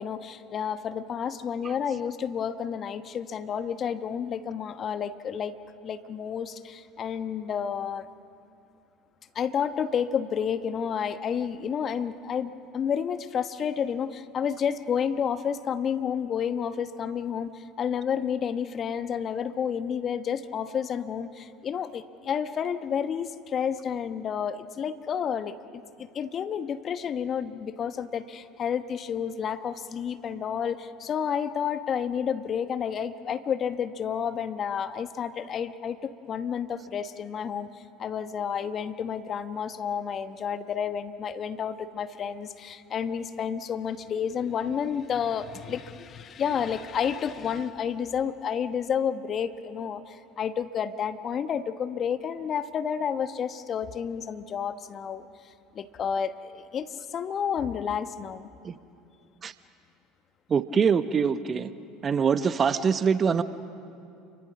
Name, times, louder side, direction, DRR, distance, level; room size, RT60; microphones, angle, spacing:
voice 1, 0.0-5.5 5.8-8.1 9.3-37.7 38.0-55.3 55.7-58.5, left 7 dB, 40° left, 11 dB, 1.1 m, -30 dB
voice 2, 60.5-61.7 62.0-63.4, right 6 dB, 35° right, 12 dB, 1.0 m, -24 dB
29.0 x 24.0 x 6.1 m, 2.6 s
hypercardioid pair, 70°, 0 cm